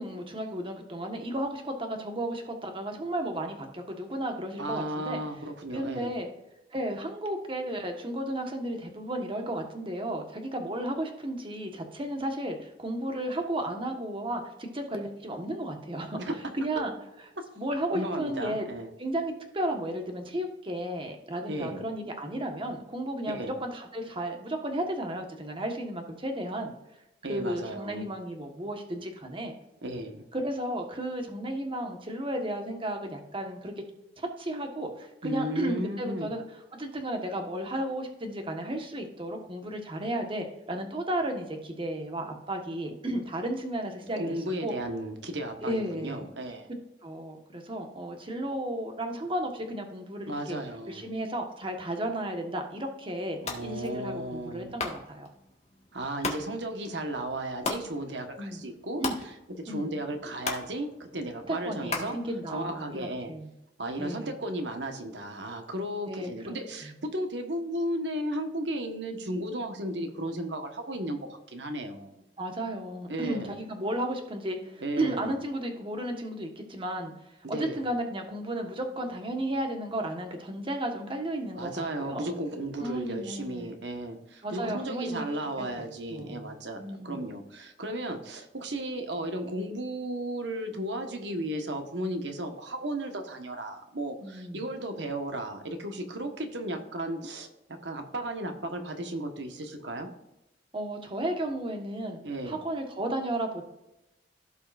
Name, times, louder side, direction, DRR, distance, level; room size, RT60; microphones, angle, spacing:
voice 1, 0.0-5.2 5.7-6.3 6.7-16.2 16.5-16.9 17.6-18.7 19.0-26.7 27.3-29.5 30.3-33.7 34.2-36.4 36.8-44.2 44.6-44.7 45.6-46.2 47.0-50.6 50.9-55.3 58.4-58.6 59.0-59.2 59.7-59.9 61.5-63.5 64.0-64.3 66.1-66.5 72.4-77.1 77.5-82.2 82.8-83.7 84.4-85.3 85.6-85.8 86.1-86.5 86.8-87.3 94.2-94.6 100.7-103.6, right 1 dB, 30° right, 4 dB, 1.5 m, -33 dB
voice 2, 4.6-6.1 16.2-16.4 17.4-17.5 17.9-18.9 21.5-21.8 23.2-23.5 27.2-28.1 29.8-30.3 35.2-36.3 44.2-46.7 50.3-51.1 53.4-54.7 55.9-62.2 62.5-63.3 63.8-72.2 73.1-73.5 74.8-75.3 77.4-77.9 81.5-97.5 97.8-100.1 102.2-102.6, right 1 dB, 80° right, 5 dB, 1.4 m, -34 dB
sound 1, 53.3-63.1, left 3 dB, 40° left, 1.8 m, -39 dB
16.0 x 5.7 x 2.6 m, 0.91 s
head